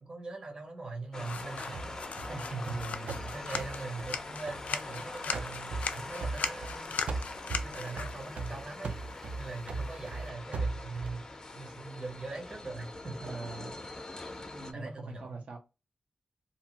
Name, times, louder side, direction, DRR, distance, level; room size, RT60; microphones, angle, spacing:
voice 1, 0.0-6.9 7.6-13.5 14.7-15.4, right 3 dB, 35° right, 0.7 m, -42 dB
sound 1, 1.1-14.7, left 2 dB, 25° left, 0.4 m, -44 dB
sound 2, 1.2-10.3, left 5 dB, 90° left, 0.3 m, -40 dB
sound 3, 1.7-5.0 5.3-6.8 7.1-11.2, right 3 dB, 60° right, 0.3 m, -38 dB
voice 2, 2.6-3.3 13.2-13.8 14.3-15.6, right 3 dB, 90° right, 0.7 m, -43 dB
2.7 x 2.3 x 2.8 m
wide cardioid pair, 170°, 2 cm